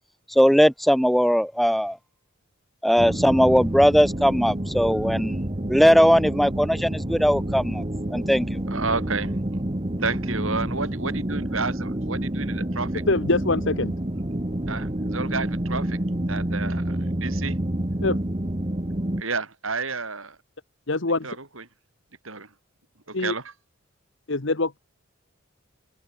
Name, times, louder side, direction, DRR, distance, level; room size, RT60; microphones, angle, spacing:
voice 1, 0.3-2.0 2.8-5.4 5.7-7.8 8.1-8.6, equal, ahead, 0.4 m, -19 dB
sound 1, 3.0-19.2, right 1 dB, 25° right, 1.4 m, -28 dB
voice 2, 8.7-9.3 10.0-12.9 14.7-16.0 16.3-17.6 19.2-20.4 21.2-21.6 22.2-22.5 23.1-23.4, right 4 dB, 80° right, 4.9 m, -31 dB
voice 3, 13.1-14.0 18.0-18.2 20.9-21.4 23.1-23.3 24.3-24.8, left 2 dB, 60° left, 1.4 m, -24 dB
head